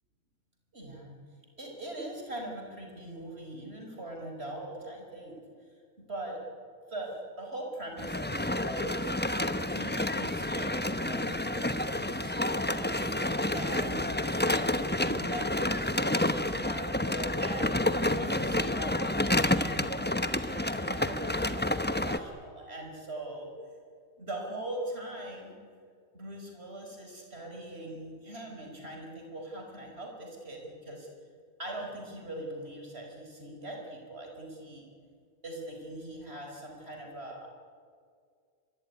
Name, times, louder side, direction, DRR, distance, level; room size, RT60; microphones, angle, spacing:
voice 1, 0.7-1.2 1.6-5.4 6.0-6.4 6.9-9.1 9.6-13.0 13.5-17.8 18.1-23.5 24.2-25.6 26.1-31.1 31.6-34.9 35.4-37.5, right 1 dB, 40° right, 1 dB, 5.6 m, -41 dB
sound 1, 8.0-22.2, left 1 dB, 10° left, 0.7 m, -29 dB
24.0 x 22.5 x 10.0 m, 2.2 s
omnidirectional pair, 1.7 m